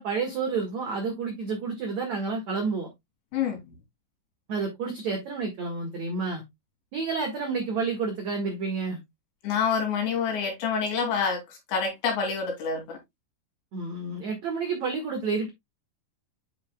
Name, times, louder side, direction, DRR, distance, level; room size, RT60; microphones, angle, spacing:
voice 1, 0.0-2.9 4.5-6.4 6.9-9.0 13.7-15.5, right 4 dB, 80° right, 1.6 m, -30 dB
voice 2, 9.4-11.4 11.7-13.0, left 6 dB, 60° left, 4.6 m, -27 dB
11.0 x 5.6 x 2.2 m
omnidirectional pair, 6.0 m